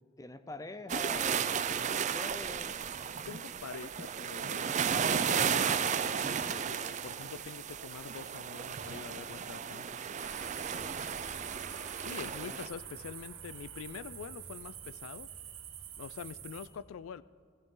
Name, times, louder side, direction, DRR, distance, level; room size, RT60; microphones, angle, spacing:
voice 1, 0.2-2.8 10.7-11.1 12.3-12.6, left 2 dB, 15° left, 11 dB, 0.5 m, -45 dB
sound 1, 0.9-12.7, right 7 dB, 35° right, 0.4 m, -34 dB
voice 2, 3.3-4.7 5.0-10.1 12.0-15.3 16.0-17.2, left 6 dB, 85° left, 17 dB, 0.4 m, -45 dB
sound 2, 10.2-16.7, right 8 dB, 75° right, 1.8 m, -46 dB
19.5 x 15.0 x 3.8 m, 2.3 s
head